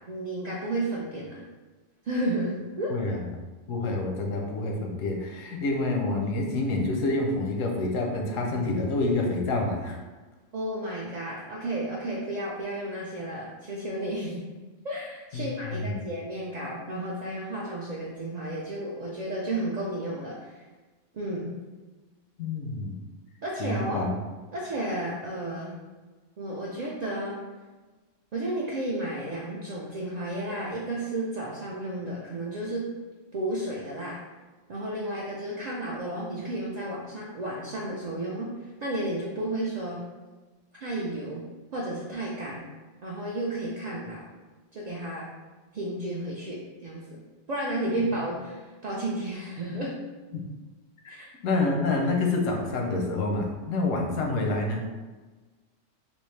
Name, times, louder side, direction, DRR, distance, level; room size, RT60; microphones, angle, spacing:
voice 1, 0.1-1.4 2.0-3.2 10.5-14.4 14.8-20.5 21.1-21.5 23.4-24.0 24.5-25.7 26.4-27.4 28.3-32.9 33.3-34.2 34.7-40.0 40.7-41.4 41.7-42.6 43.0-44.3 44.7-45.3 45.7-47.2 47.5-49.9 51.1-51.3, right 1 dB, 60° right, -5 dB, 0.4 m, -32 dB
voice 2, 3.7-10.0 15.3-16.0 22.4-23.0 23.6-24.1 50.3-50.4 51.0-51.2 51.4-54.8, left 2 dB, 85° left, 2 dB, 1.0 m, -27 dB
3.5 x 2.5 x 3.1 m, 1.3 s
omnidirectional pair, 1.3 m